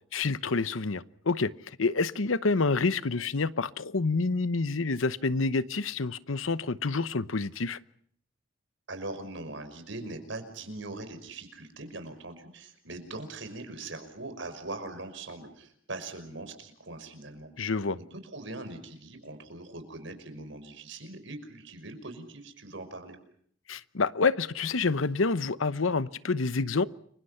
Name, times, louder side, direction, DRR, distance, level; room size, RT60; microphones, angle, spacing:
voice 1, 0.1-7.8 17.6-18.0 23.7-26.9, left 4 dB, 90° left, 16 dB, 0.9 m, -28 dB
voice 2, 8.9-17.7 18.0-23.2, right 2 dB, 70° right, 8 dB, 5.6 m, -41 dB
30.0 x 24.0 x 5.7 m, 0.64 s
head